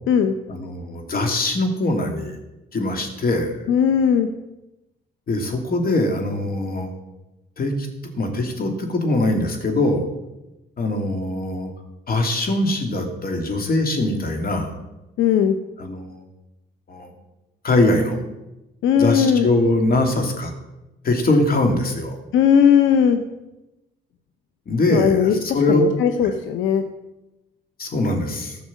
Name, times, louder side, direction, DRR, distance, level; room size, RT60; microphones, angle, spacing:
voice 1, 0.5-2.4 2.7-3.5 5.3-6.9 7.6-7.9 8.1-10.1 10.8-11.7 12.1-14.8 15.8-16.2 16.9-17.1 17.6-18.2 19.0-20.5 21.0-22.2 24.7-25.8 26.2-26.3 27.8-28.6, left 2 dB, 50° left, 4 dB, 2.7 m, -22 dB
voice 2, 3.7-4.3 15.2-15.5 18.8-19.5 22.3-23.2 24.9-25.4 25.7-26.8, left 8 dB, 80° left, 8 dB, 0.8 m, -17 dB
14.5 x 6.2 x 7.4 m, 1.0 s
cardioid pair, 90°, 20 cm